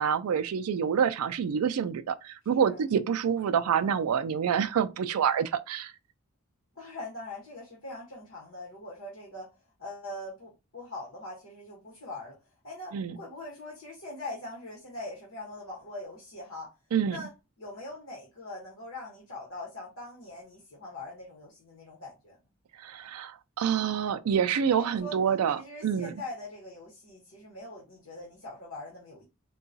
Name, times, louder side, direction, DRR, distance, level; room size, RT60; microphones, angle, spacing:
voice 1, 0.0-5.9 12.9-13.2 16.9-17.2 22.8-26.1, right 7 dB, 90° right, 0.4 m, -27 dB
voice 2, 6.7-12.3 12.6-16.7 17.1-17.3 17.6-22.4 24.8-25.2 25.5-29.2, left 2 dB, 70° left, 1.1 m, -42 dB
3.8 x 2.3 x 2.6 m
head